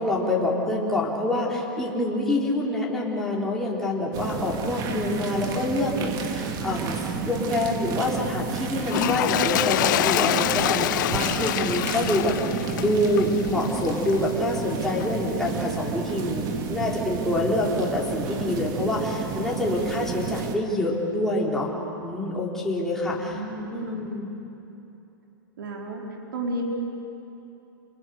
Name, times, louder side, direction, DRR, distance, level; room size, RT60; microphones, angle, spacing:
voice 1, 0.0-16.4 16.7-21.7 22.0-23.4 23.7-24.3, left 1 dB, 5° left, -5 dB, 4.1 m, -26 dB
sound 1, 4.1-20.6, right 6 dB, 35° right, 2.0 m, -31 dB
Toilet flush, 8.8-14.3 15.0-15.1, left 15 dB, 60° left, 0.6 m, -26 dB
voice 2, 23.0-24.1 25.6-26.0 26.3-26.6, right 2 dB, 75° right, 0 dB, 4.7 m, -33 dB
29.0 x 20.5 x 6.7 m, 2.9 s
hypercardioid pair, 130°, 12 cm